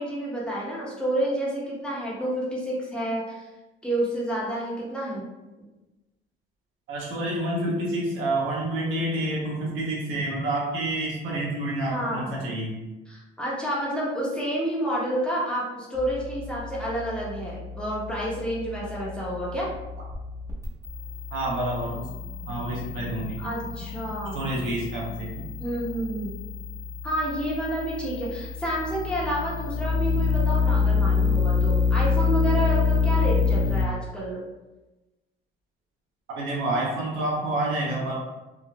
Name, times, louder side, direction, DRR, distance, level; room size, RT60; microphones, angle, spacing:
voice 1, 0.0-3.4 3.8-5.3 11.9-12.3 13.1-19.7 23.4-24.5 25.6-26.3 27.0-34.4, right 1 dB, 5° left, -6 dB, 1.1 m, -29 dB
voice 2, 6.9-12.7 21.3-22.1 22.5-23.4 24.3-25.3 36.4-38.2, right 1 dB, 85° right, -4 dB, 1.0 m, -28 dB
sound 1, 15.9-33.8, left 4 dB, 15° right, 1.0 m, -27 dB
3.7 x 2.5 x 2.3 m, 1.1 s
cardioid pair, 90°, 20 cm